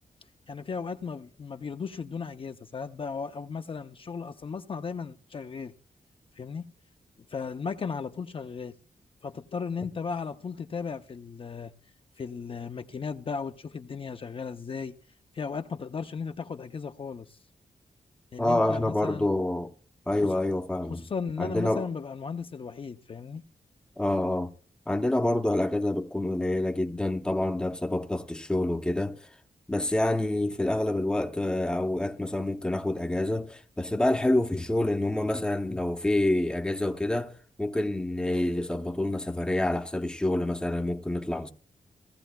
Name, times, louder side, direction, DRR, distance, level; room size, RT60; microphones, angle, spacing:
voice 1, 0.5-5.7 6.3-6.7 7.3-8.8 9.2-11.7 12.2-15.0 15.3-17.4 18.3-19.4 20.2-20.3 20.9-23.4, left 5 dB, 40° left, 0.5 m, -36 dB
voice 2, 18.4-19.7 20.1-21.1 21.4-21.8 24.0-24.5 24.9-29.2 29.7-37.3 37.6-41.5, left 1 dB, 5° left, 0.7 m, -27 dB
17.0 x 15.0 x 2.2 m
wide cardioid pair, 150°, 14 cm